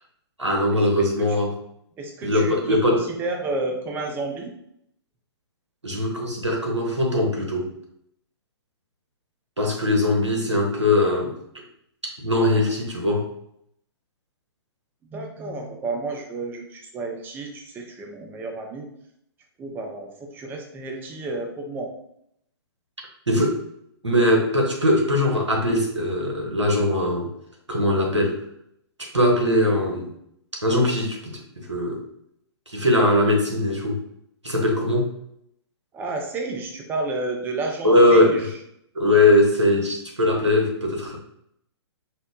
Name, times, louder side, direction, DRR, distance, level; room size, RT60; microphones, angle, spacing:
voice 1, 0.4-1.5 2.2-3.1 5.8-7.7 9.6-11.3 12.2-13.3 23.3-23.6 24.0-27.3 27.7-28.4 29.0-30.1 30.6-32.0 32.7-34.0 34.4-35.1 37.8-38.5 38.9-41.2, left 1 dB, 90° right, 0 dB, 1.2 m, -21 dB
voice 2, 2.0-4.5 15.1-18.9 19.6-21.9 35.9-38.4, right 3 dB, 15° right, 2 dB, 0.5 m, -31 dB
4.5 x 2.1 x 3.7 m, 0.73 s
figure-of-eight pair, 120°, 14 cm